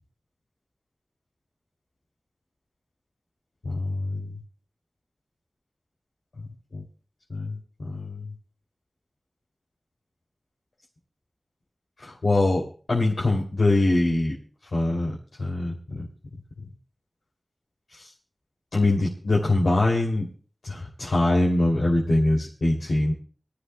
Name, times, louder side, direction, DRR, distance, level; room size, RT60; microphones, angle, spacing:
voice 1, 3.6-4.3 6.7-6.8 7.3-8.3 12.0-14.4 14.7-16.1 18.7-20.3 20.6-23.1, left 2 dB, 90° left, -4 dB, 2.8 m, -23 dB
24.0 x 13.5 x 2.2 m, 0.37 s
wide cardioid pair, 50°, 0 cm